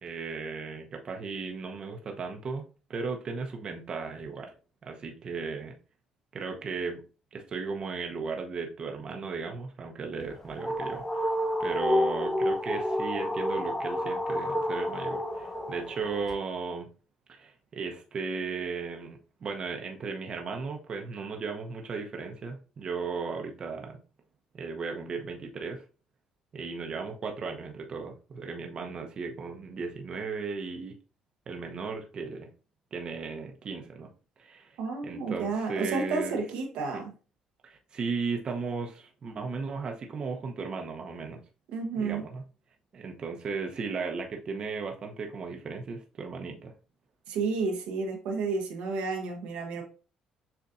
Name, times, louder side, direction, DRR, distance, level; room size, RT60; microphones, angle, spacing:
voice 1, 0.0-4.5 4.8-5.7 6.3-7.0 7.3-11.3 11.6-16.9 17.3-24.0 24.5-25.8 26.5-30.9 31.5-32.5 32.9-34.1 34.4-34.8 35.0-36.4 37.6-41.4 42.0-42.4 42.9-46.7, right 4 dB, 45° right, 0.7 m, -36 dB
sound 1, 10.2-16.3, left 1 dB, 20° left, 1.4 m, -30 dB
voice 2, 34.8-37.1 41.7-42.2 47.3-49.8, right 4 dB, 80° right, 0.9 m, -31 dB
6.9 x 2.5 x 2.5 m
supercardioid pair, 75°, 2 cm